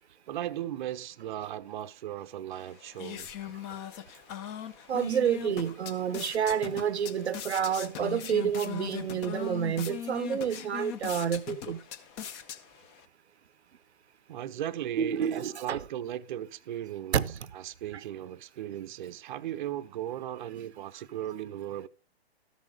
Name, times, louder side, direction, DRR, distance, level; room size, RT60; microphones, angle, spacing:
voice 1, 0.3-3.3 14.3-21.9, right 12 dB, 50° right, 0.6 m, -37 dB
sound 1, 2.5-13.0, left 9 dB, 25° left, 0.7 m, -40 dB
voice 2, 4.9-11.8 15.0-15.8 17.1-17.5, right 8 dB, 80° right, 0.7 m, -29 dB
13.0 x 6.1 x 5.1 m
hypercardioid pair, 135°, 32 cm